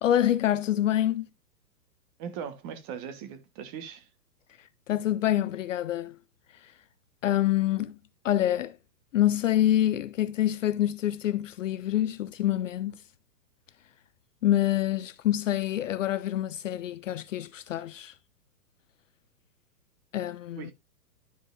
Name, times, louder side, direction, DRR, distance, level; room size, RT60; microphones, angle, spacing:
voice 1, 0.0-1.3 4.9-6.2 6.6-6.7 7.2-8.0 8.2-8.8 9.1-13.0 14.4-18.1 20.1-20.7, left 12 dB, 50° left, 0.5 m, -26 dB
voice 2, 2.2-4.1 20.6-20.7, right 7 dB, 30° right, 1.4 m, -39 dB
12.0 x 4.7 x 2.6 m
hypercardioid pair, 140°, 49 cm